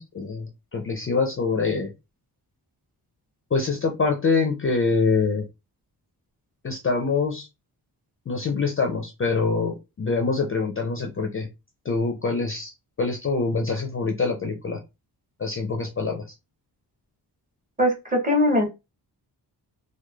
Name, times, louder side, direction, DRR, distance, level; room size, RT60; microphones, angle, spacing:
voice 1, 0.0-1.9 3.5-5.4 6.6-7.5 8.3-11.5 11.9-12.7 13.0-14.8 15.4-16.2, left 4 dB, 35° left, 3 dB, 0.4 m, -25 dB
voice 2, 17.8-18.7, left 1 dB, 20° right, 1 dB, 0.7 m, -21 dB
3.0 x 2.2 x 2.2 m, 0.26 s
wide cardioid pair, 140°, 40 cm